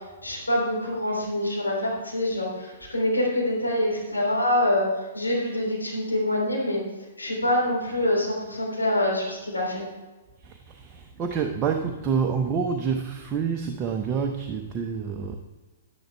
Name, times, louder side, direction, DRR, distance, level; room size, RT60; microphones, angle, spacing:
voice 1, 0.2-4.8 5.1-6.8 7.2-9.8, left 1 dB, 80° left, -3 dB, 3.4 m, -25 dB
voice 2, 10.4-15.3, right 6 dB, 25° right, 3 dB, 0.7 m, -28 dB
11.0 x 10.0 x 3.4 m, 1.2 s
figure-of-eight pair, 115°, 0 cm